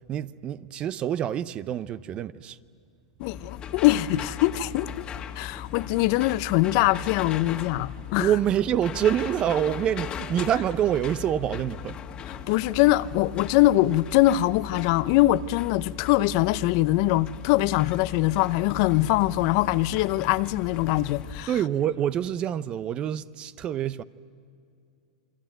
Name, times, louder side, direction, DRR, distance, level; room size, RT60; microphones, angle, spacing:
voice 1, 0.1-2.6 8.2-12.0 21.5-24.0, right 10 dB, 30° right, 0.7 m, -26 dB
voice 2, 3.2-5.0 5.4-8.3 12.3-21.5, left 16 dB, 50° left, 0.7 m, -23 dB
sound 1, 3.2-21.5, left 8 dB, 30° left, 1.8 m, -38 dB
28.0 x 23.0 x 9.2 m
hypercardioid pair, 125°, 3 cm